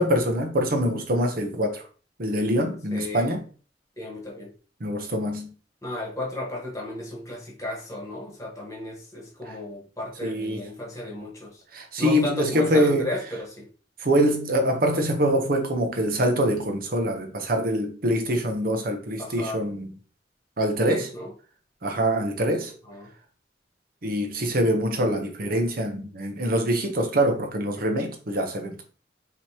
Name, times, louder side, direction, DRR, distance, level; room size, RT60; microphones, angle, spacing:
voice 1, 0.0-1.8 2.2-3.4 4.8-5.5 10.2-10.6 11.7-13.1 14.0-19.9 20.6-21.0 21.8-22.7 24.0-28.8, equal, 55° right, 0.9 m, -24 dB
voice 2, 2.9-3.3 4.0-4.5 5.8-11.6 12.0-13.7 19.2-19.6 20.8-21.3 22.8-23.1, left 1 dB, 20° left, 1.4 m, -34 dB
5.1 x 3.0 x 2.9 m
head